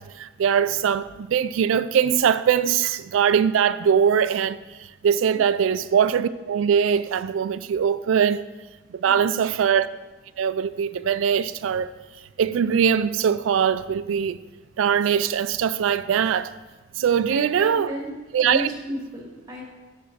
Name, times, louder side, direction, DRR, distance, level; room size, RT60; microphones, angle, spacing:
voice 1, 0.0-8.4 8.9-9.9 10.4-11.9 12.4-14.4 14.8-16.5 17.0-17.9 18.3-18.7, right 7 dB, 80° right, 0.3 m, -22 dB
voice 2, 9.0-9.5 17.3-18.1 18.4-19.7, equal, 20° right, 2.0 m, -34 dB
6.8 x 6.2 x 5.9 m
head